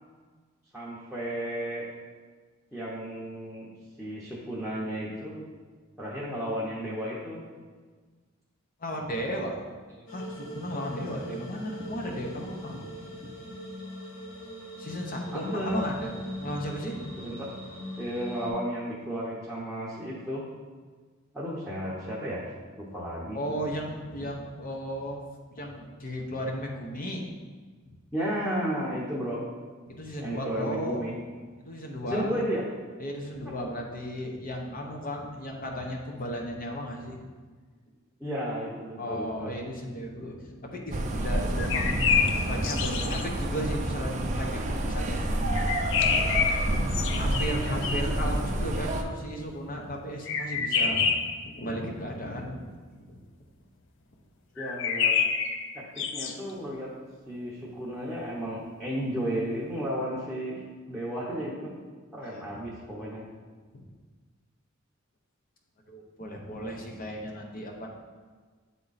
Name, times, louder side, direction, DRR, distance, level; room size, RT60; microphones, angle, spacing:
voice 1, 0.7-1.8 2.7-3.7 4.0-5.5 6.0-7.4 15.3-15.8 17.2-17.5 18.0-20.4 21.3-22.4 22.8-23.4 28.1-29.4 30.2-31.1 32.1-32.6 38.2-39.5 54.6-55.2 55.7-56.9 57.3-60.6 60.9-61.7 62.1-63.2, equal, ahead, -7 dB, 0.9 m, -33 dB
voice 2, 8.8-9.5 10.1-13.3 14.8-17.1 23.3-25.2 25.5-27.2 27.9-28.0 29.9-31.0 31.6-32.4 33.0-37.2 39.0-45.7 46.2-46.4 47.2-52.7 53.1-53.2 62.2-62.6 63.7-63.8 65.9-67.9, equal, 45° left, 1 dB, 0.9 m, -35 dB
sound 1, 10.1-18.5, left 1 dB, 85° left, 1.2 m, -41 dB
sound 2, 40.9-49.0, right 1 dB, 35° right, 0.5 m, -29 dB
sound 3, 41.6-43.2 45.5-48.2 50.3-51.4 54.6-56.3, left 6 dB, 65° left, 0.5 m, -27 dB
8.7 x 3.7 x 4.1 m, 1.5 s
head